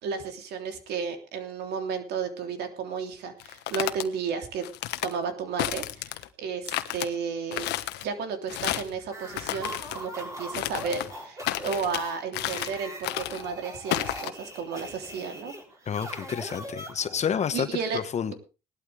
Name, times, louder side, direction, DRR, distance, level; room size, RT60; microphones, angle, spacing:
voice 1, 0.0-4.7 5.0-7.7 8.0-15.6 17.5-18.0, right 6 dB, 75° right, 6 dB, 3.3 m, -33 dB
sound 1, 3.4-4.1 4.6-5.1 5.6-6.3 6.7-7.1 7.5-8.0 8.5-8.9 9.3-10.0 10.5-11.1 11.4-12.0 12.3-12.8 13.0-13.4 13.9-14.3, left 15 dB, 85° left, 1.3 m, -31 dB
sound 2, 9.0-17.3, equal, 20° right, 6.5 m, -41 dB
voice 2, 15.9-17.7 17.9-18.3, left 8 dB, 40° left, 11 dB, 1.3 m, -29 dB
19.0 x 12.0 x 3.4 m, 0.31 s
cardioid pair, 110°, 17 cm